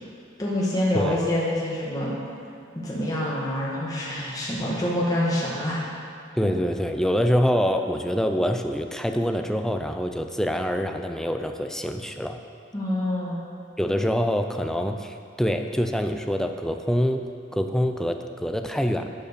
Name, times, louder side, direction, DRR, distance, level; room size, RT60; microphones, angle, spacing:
voice 1, 0.4-2.1 2.8-5.8 12.7-13.4, left 1 dB, 20° left, -6 dB, 1.8 m, -26 dB
voice 2, 6.4-12.4 13.8-17.3 17.5-19.1, equal, 5° left, 5 dB, 0.4 m, -25 dB
11.5 x 5.3 x 6.9 m, 2.4 s
head